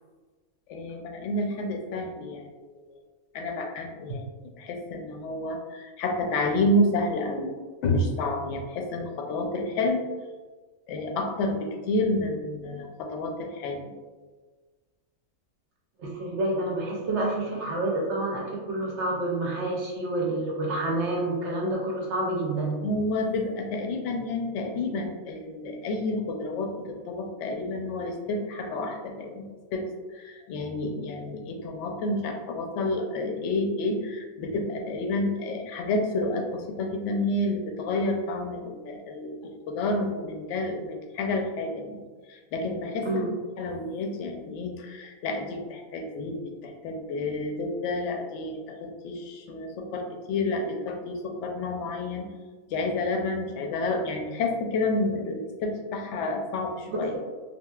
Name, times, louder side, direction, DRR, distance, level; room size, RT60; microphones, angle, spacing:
voice 1, 0.7-3.0 3.3-7.5 7.8-10.0 10.9-13.9 22.8-42.0 42.3-43.3 43.6-52.3 52.7-57.1, left 2 dB, 65° left, 3 dB, 0.8 m, -30 dB
voice 2, 16.0-22.8 43.0-43.3, right 2 dB, 65° right, -2 dB, 0.8 m, -28 dB
3.6 x 2.7 x 2.3 m, 1.3 s
omnidirectional pair, 1.5 m